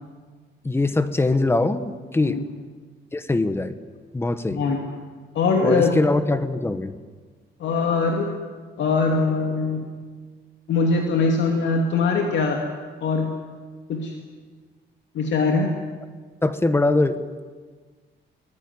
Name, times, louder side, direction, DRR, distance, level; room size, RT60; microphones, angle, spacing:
voice 1, 0.6-2.4 3.1-3.7 4.1-4.6 5.6-6.9 16.4-17.4, left 2 dB, 10° left, 11 dB, 1.1 m, -22 dB
voice 2, 4.5-4.8 5.3-5.9 7.6-8.3 8.8-9.9 10.7-12.6 13.0-13.3 13.9-14.1 15.1-15.7, left 4 dB, 70° left, 2 dB, 2.6 m, -22 dB
24.0 x 20.0 x 9.7 m, 1.5 s
cardioid pair, 180°, 20 cm